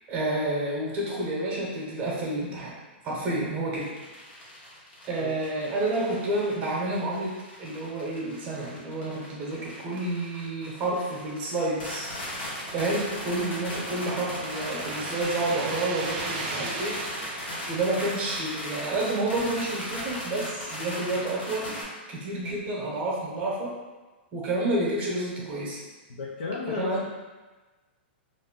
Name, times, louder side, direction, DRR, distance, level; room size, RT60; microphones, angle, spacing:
voice 1, 0.1-2.7 3.0-3.9 5.0-12.1 12.7-17.0 17.7-21.8 22.1-23.7 24.3-25.8 26.7-27.1, right 2 dB, 25° right, -4 dB, 0.8 m, -29 dB
sound 1, 3.7-21.8, left 1 dB, 65° left, 1.0 m, -38 dB
sound 2, 12.1-18.6, right 3 dB, 40° right, 0.4 m, -38 dB
voice 2, 26.1-27.1, left 4 dB, 85° left, -4 dB, 0.5 m, -33 dB
2.5 x 2.1 x 3.6 m, 1.2 s
hypercardioid pair, 155°, 6 cm